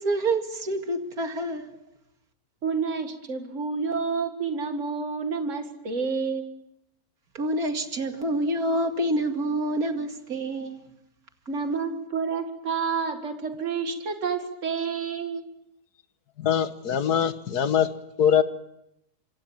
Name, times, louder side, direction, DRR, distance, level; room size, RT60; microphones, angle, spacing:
voice 1, 0.0-1.8 7.3-10.9, right 1 dB, 70° right, 2.7 m, -27 dB
voice 2, 2.6-6.5 11.5-15.4, right 5 dB, 50° right, 2.4 m, -29 dB
voice 3, 16.4-17.9 18.2-18.4, left 8 dB, 85° left, 1.8 m, -22 dB
26.5 x 25.0 x 7.3 m
omnidirectional pair, 1.6 m